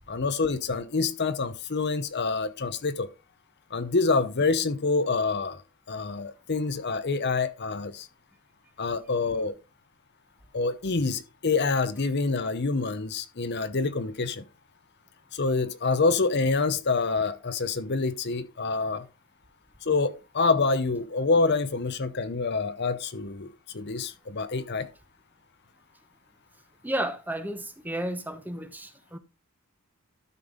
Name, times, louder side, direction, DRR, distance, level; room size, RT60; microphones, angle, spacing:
voice 1, 0.1-3.1 3.7-5.6 5.9-8.1 8.8-9.5 10.5-14.4 15.3-19.1 19.9-23.5 23.7-24.9, left 4 dB, 50° left, 0.8 m, -26 dB
voice 2, 26.8-29.2, right 1 dB, 10° right, 1.0 m, -32 dB
12.5 x 5.4 x 3.9 m
head